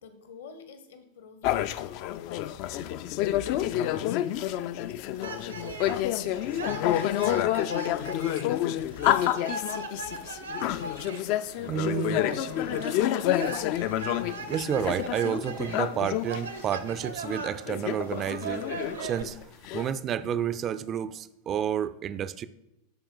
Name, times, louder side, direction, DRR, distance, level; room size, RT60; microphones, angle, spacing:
voice 1, 0.0-10.4, left 6 dB, 60° left, 9 dB, 0.9 m, -50 dB
sound 1, 1.4-16.4 16.9-17.0 17.2-19.9, left 12 dB, 45° left, 0.3 m, -29 dB
sound 2, 5.2-19.2, right 3 dB, 70° right, 0.7 m, -39 dB
voice 2, 11.7-12.3 14.5-18.6 19.0-19.4 19.7-22.5, right 9 dB, 30° right, 14 dB, 0.4 m, -30 dB
11.0 x 4.4 x 3.8 m, 0.84 s
figure-of-eight pair, 90°, 0 cm